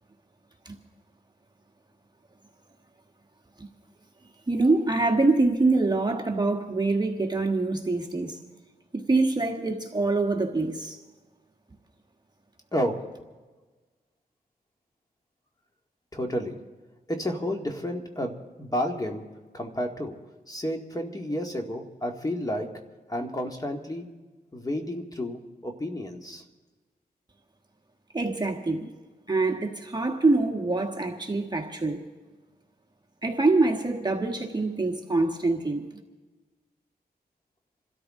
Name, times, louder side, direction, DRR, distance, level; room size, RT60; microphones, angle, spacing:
voice 1, 4.5-8.4 8.9-11.0 28.1-28.9 29.3-32.0 33.2-35.8, right 3 dB, 25° right, 3 dB, 1.5 m, -25 dB
voice 2, 12.7-13.0 16.1-16.6 17.1-19.2 19.5-20.2 20.5-22.7 23.1-24.1 24.5-26.4, equal, 20° left, 3 dB, 1.9 m, -31 dB
27.5 x 13.0 x 3.7 m, 1.3 s
wide cardioid pair, 90°, 16 cm